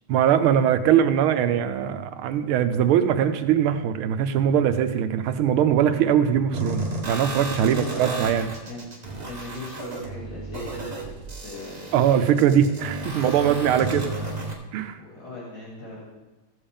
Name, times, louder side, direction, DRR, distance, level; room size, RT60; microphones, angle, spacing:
voice 1, 0.1-8.5 11.9-14.1 14.7-15.0, right 9 dB, 80° right, 9 dB, 1.5 m, -21 dB
sound 1, 6.5-14.5, right 2 dB, 30° right, 0.9 m, -34 dB
voice 2, 7.6-8.0 8.6-8.9 9.2-11.1 11.4-11.8 13.3-13.7 14.1-14.3 15.0-16.1, left 2 dB, 50° left, -6 dB, 3.3 m, -38 dB
15.0 x 7.2 x 3.5 m, 1.1 s
omnidirectional pair, 2.4 m